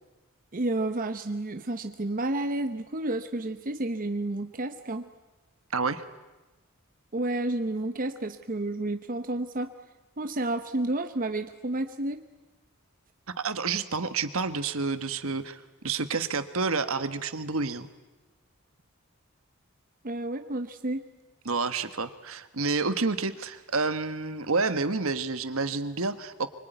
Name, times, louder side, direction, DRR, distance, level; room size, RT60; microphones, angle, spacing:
voice 1, 0.5-5.1 7.1-9.7 10.2-12.2 20.0-21.0, right 2 dB, 40° right, 8 dB, 0.9 m, -30 dB
voice 2, 5.7-6.0 13.3-17.9 21.4-26.5, right 4 dB, 65° right, 11 dB, 1.4 m, -29 dB
24.5 x 24.0 x 9.3 m, 1.1 s
head